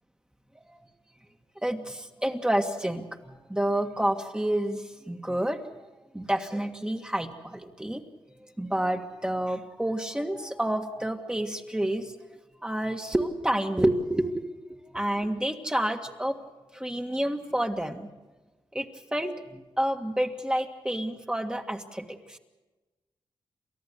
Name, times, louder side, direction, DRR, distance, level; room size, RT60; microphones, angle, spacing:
voice 1, 1.6-5.6 6.1-8.0 8.6-12.1 12.6-14.5 14.9-16.4 16.7-18.1 18.7-18.9 19.1-22.4, right 1 dB, 10° right, 4 dB, 1.7 m, -29 dB
29.0 x 13.5 x 8.3 m, 1.2 s
cardioid pair, 90°, 9 cm